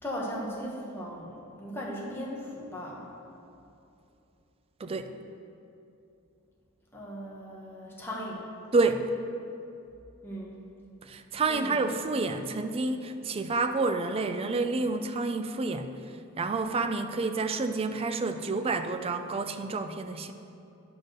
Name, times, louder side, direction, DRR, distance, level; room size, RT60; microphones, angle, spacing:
voice 1, 0.0-3.1 6.9-8.4 10.2-10.6 11.5-11.9, equal, 10° left, -5 dB, 1.2 m, -38 dB
voice 2, 4.8-5.1 8.7-9.1 11.1-15.9 16.4-20.3, right 3 dB, 25° right, 8 dB, 0.3 m, -29 dB
9.6 x 4.4 x 6.3 m, 2.7 s
head